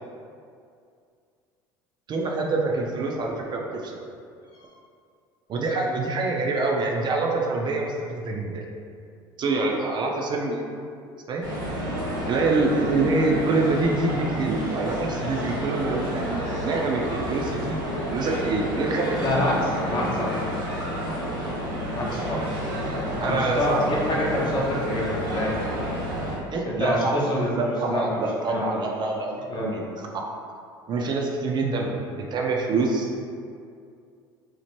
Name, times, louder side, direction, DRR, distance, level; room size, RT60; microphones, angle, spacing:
voice 1, 2.1-4.0 5.5-8.6 9.4-10.6 11.3-11.4 12.3-17.8 18.1-19.2 23.2-23.8 24.1-24.2 26.5-27.1 27.5-30.4 30.9-33.1, right 3 dB, 40° right, 0 dB, 0.4 m, -26 dB
sound 1, 11.4-26.4, equal, 80° right, 1.0 m, -30 dB
voice 2, 19.2-20.4 21.9-22.6 23.1-25.6 26.6-28.2 28.5-28.8 29.5-29.8, left 1 dB, 40° left, -4 dB, 0.7 m, -27 dB
2.9 x 2.0 x 3.0 m, 2.4 s
hypercardioid pair, 80°, 11 cm